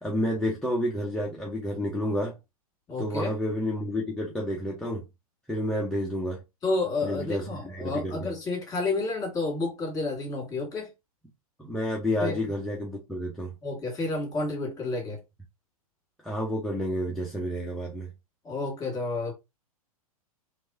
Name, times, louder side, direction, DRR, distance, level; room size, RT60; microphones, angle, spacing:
voice 1, 0.0-2.4 3.0-5.0 5.5-6.4 7.0-8.3 11.6-13.5 16.2-18.1, equal, ahead, 0.9 m, -30 dB
voice 2, 2.9-3.3 6.6-10.9 12.2-12.3 13.6-15.2 18.4-19.3, left 3 dB, 20° left, 2.2 m, -30 dB
3.3 x 3.3 x 2.8 m
hypercardioid pair, 110°, 19 cm